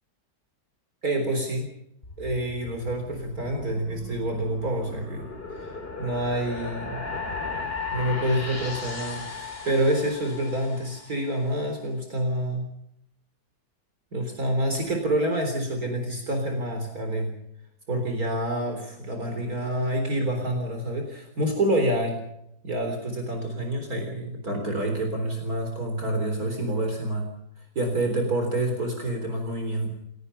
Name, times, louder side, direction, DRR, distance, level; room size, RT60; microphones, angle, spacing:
voice 1, 1.0-1.7 2.2-7.0 7.9-12.7 14.1-17.3 17.9-22.2 22.6-27.3 27.8-29.9, right 1 dB, 55° right, 4 dB, 4.3 m, -27 dB
sound 1, 2.0-11.4, left 4 dB, 35° left, 3.2 m, -36 dB
29.0 x 18.5 x 5.7 m, 0.80 s
omnidirectional pair, 1.8 m